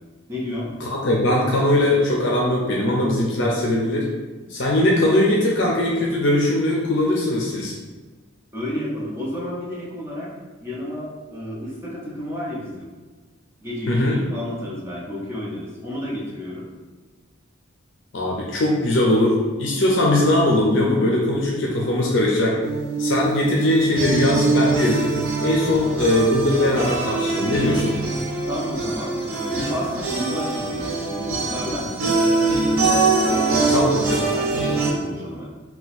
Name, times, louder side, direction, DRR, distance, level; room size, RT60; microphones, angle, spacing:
voice 1, 0.3-0.7 8.5-10.3 10.6-12.9 13.6-16.7 28.5-31.9 33.3-35.4, left 1 dB, 10° right, -6 dB, 0.7 m, -31 dB
voice 2, 0.8-4.1 4.5-7.7 13.9-14.2 18.1-22.6 23.0-25.1 25.4-28.0 33.7-34.2, left 1 dB, 60° left, -2 dB, 0.5 m, -20 dB
sound 1, 22.6-34.9, right 3 dB, 85° right, 0.6 m, -23 dB
2.9 x 2.3 x 4.1 m, 1.3 s
head